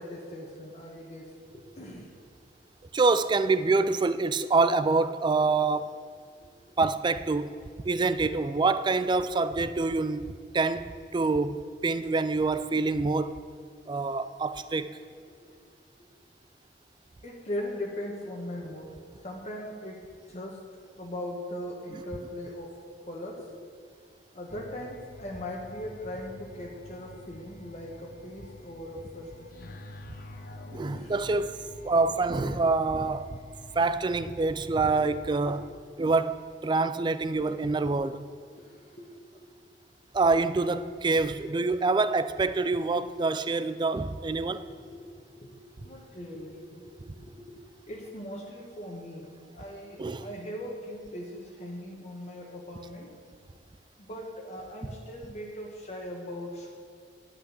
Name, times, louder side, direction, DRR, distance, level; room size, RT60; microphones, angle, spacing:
voice 1, 0.0-2.1 6.4-6.8 15.4-15.5 17.2-20.6 20.9-23.5 24.3-29.7 30.7-31.2 35.5-35.6 38.6-39.6 44.4-53.1 54.0-56.7, left 1 dB, 40° left, 1.2 m, -40 dB
voice 2, 2.9-6.0 6.8-7.6 7.9-13.4 13.9-15.0 21.9-22.0 30.7-33.4 33.8-35.6 36.0-36.4 36.6-38.3 40.1-44.6 50.0-50.3, right 3 dB, 25° right, 0.4 m, -26 dB
sound 1, 24.5-35.7, left 2 dB, 55° left, 0.8 m, -48 dB
10.5 x 6.0 x 8.3 m
head